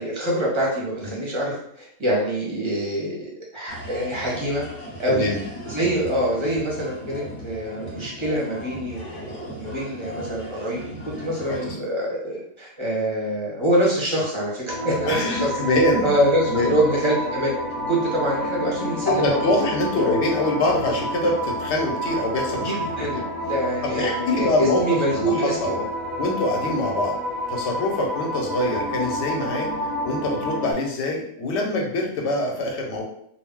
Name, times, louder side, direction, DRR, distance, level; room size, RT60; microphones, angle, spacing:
voice 1, 0.0-4.6 5.0-5.3 5.6-15.6 16.0-17.5 17.9-19.4 20.0-20.1 22.6-25.9 26.7-26.9, right 1 dB, 30° right, -4 dB, 0.6 m, -25 dB
sound 1, 3.7-11.7, equal, 35° left, 0.6 m, -38 dB
voice 2, 5.1-5.4 11.5-11.6 15.0-16.1 16.4-16.8 19.1-23.2 23.8-25.7 26.2-27.1 27.5-29.7 30.0-33.0, left 2 dB, 65° left, 0 dB, 0.9 m, -24 dB
sound 2, 14.7-30.7, equal, ahead, 0.8 m, -29 dB
2.4 x 2.0 x 3.6 m, 0.68 s
omnidirectional pair, 1.4 m